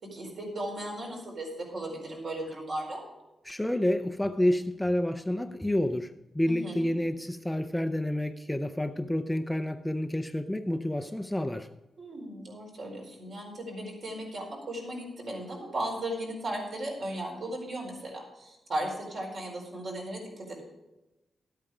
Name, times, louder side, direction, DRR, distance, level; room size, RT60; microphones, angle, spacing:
voice 1, 0.0-3.0 6.5-6.9 12.0-20.6, right 1 dB, 55° right, 4.5 m, -36 dB
voice 2, 3.5-11.7, left 1 dB, 5° left, 0.5 m, -29 dB
13.0 x 8.7 x 4.9 m
wide cardioid pair, 125°, 0 cm